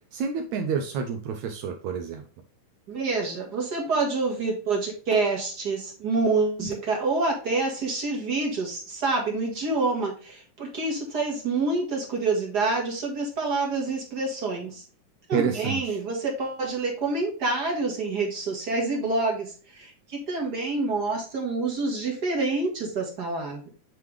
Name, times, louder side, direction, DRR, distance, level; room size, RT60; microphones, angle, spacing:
voice 1, 0.1-2.2 15.3-16.0, right 6 dB, 80° right, 1.7 m, -28 dB
voice 2, 2.9-14.8 15.3-23.7, right 3 dB, 45° right, 1.5 m, -27 dB
9.3 x 3.3 x 3.4 m
omnidirectional pair, 3.8 m